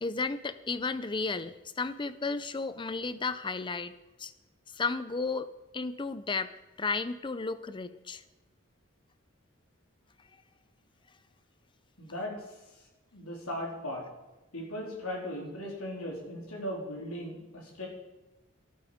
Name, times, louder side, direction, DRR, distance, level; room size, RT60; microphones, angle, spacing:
voice 1, 0.0-3.9 4.2-4.3 4.7-5.5 5.7-6.5 6.8-8.2, left 4 dB, 25° left, 13 dB, 0.5 m, -33 dB
voice 2, 12.0-12.4 13.1-14.1 14.5-17.9, left 1 dB, 85° left, -1 dB, 3.9 m, -37 dB
13.0 x 12.0 x 5.0 m, 1.1 s
head